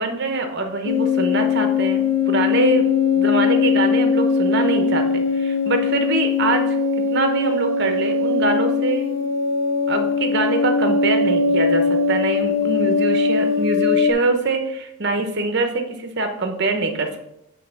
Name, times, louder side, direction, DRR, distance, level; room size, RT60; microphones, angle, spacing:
voice 1, 0.0-6.8 7.1-9.1 9.9-17.2, right 3 dB, 50° right, 5 dB, 1.0 m, -24 dB
sound 1, 0.9-14.1, left 5 dB, 65° left, 0.7 m, -20 dB
8.4 x 3.4 x 5.8 m, 0.83 s
head